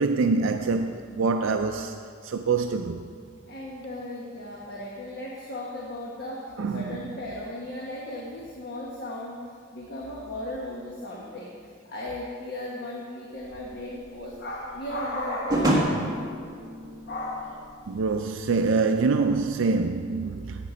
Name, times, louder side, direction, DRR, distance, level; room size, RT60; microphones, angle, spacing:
voice 1, 0.0-1.9 2.2-3.1 6.6-7.0 17.9-20.7, right 4 dB, 60° right, 0.4 m, -25 dB
voice 2, 3.5-11.5 11.9-16.0 17.1-17.6, left 1 dB, 50° left, 1.2 m, -35 dB
sound 1, 13.5-18.2, right 1 dB, 15° right, 1.4 m, -29 dB
10.5 x 8.6 x 5.0 m
head